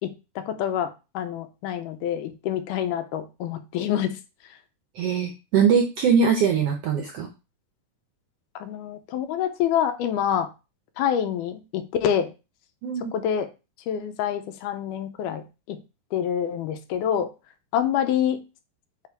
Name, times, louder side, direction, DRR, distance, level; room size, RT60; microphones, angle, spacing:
voice 1, 0.0-4.1 8.6-10.5 11.0-12.3 13.1-13.5 13.9-15.8 16.1-17.3 17.7-18.4, left 9 dB, 90° left, 8 dB, 2.2 m, -26 dB
voice 2, 4.9-7.3 12.8-13.1, right 6 dB, 75° right, 2 dB, 1.4 m, -22 dB
7.4 x 2.9 x 4.5 m, 0.28 s
omnidirectional pair, 3.7 m